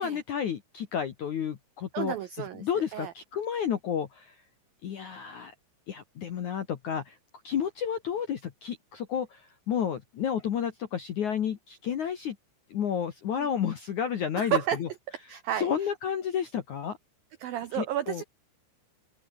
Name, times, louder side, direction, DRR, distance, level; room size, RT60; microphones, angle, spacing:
voice 1, 0.0-2.1 2.6-4.3 4.8-5.5 5.9-7.2 7.4-12.4 12.7-14.9 15.6-17.0 17.7-18.2, left 8 dB, 65° left, 1.9 m, -31 dB
voice 2, 1.9-3.1 13.4-13.5 14.4-14.8 15.3-15.7 17.4-18.2, right 11 dB, 85° right, 2.0 m, -31 dB
open air
omnidirectional pair, 5.8 m